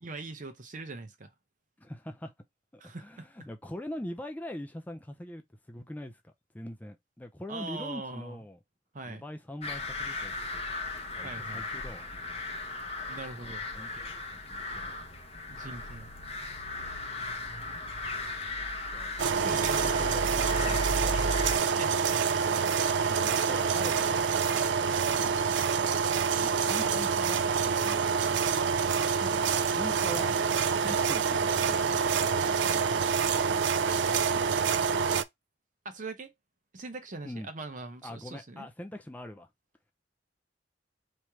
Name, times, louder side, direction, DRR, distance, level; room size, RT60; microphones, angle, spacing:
voice 1, 0.0-1.3 2.8-3.3 7.5-8.4 8.9-9.2 11.2-11.7 13.1-13.7 15.5-16.1 19.4-20.0 20.5-20.7 21.6-22.3 25.2-25.4 29.2-29.4 30.8-31.0 32.6-33.1 35.8-36.3 36.7-38.7, right 3 dB, 45° right, 0.8 m, -41 dB
voice 2, 1.8-2.3 2.7-8.6 9.0-10.6 11.2-12.3 13.8-14.9 18.9-20.8 21.0-21.2 23.1-24.4 26.4-28.5 29.8-30.3 30.9-32.0 37.2-37.5 38.0-39.5, left 1 dB, 10° left, 0.5 m, -43 dB
sound 1, 9.6-21.6, left 2 dB, 35° left, 0.9 m, -36 dB
sound 2, 19.2-35.2, right 6 dB, 75° right, 0.4 m, -27 dB
3.2 x 2.8 x 4.6 m
head